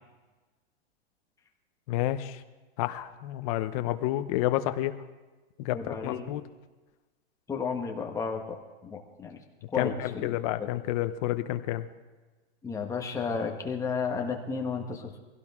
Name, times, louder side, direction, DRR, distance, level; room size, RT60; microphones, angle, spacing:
voice 1, 1.9-2.4 2.8-4.9 5.6-6.4 9.7-11.9, left 14 dB, 35° left, 11 dB, 0.7 m, -30 dB
voice 2, 5.7-6.3 7.5-8.4 8.9-9.4 9.7-10.3 12.6-15.1, left 5 dB, 10° left, 1 dB, 1.3 m, -32 dB
23.0 x 16.5 x 3.7 m, 1.2 s
supercardioid pair, 155°, 33 cm